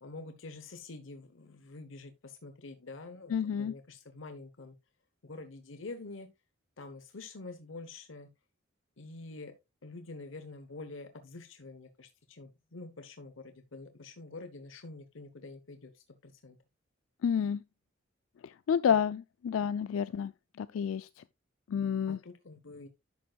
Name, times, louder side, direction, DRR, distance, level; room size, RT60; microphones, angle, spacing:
voice 1, 0.0-4.8 5.2-6.3 6.8-8.3 9.0-9.5 9.8-16.6 18.9-19.0 22.1-22.9, left 3 dB, 70° left, 1.0 m, -47 dB
voice 2, 3.3-3.7 17.2-17.6 18.4-20.3 20.6-21.1 21.7-22.2, left 7 dB, 85° left, 0.3 m, -29 dB
10.5 x 7.3 x 2.3 m
head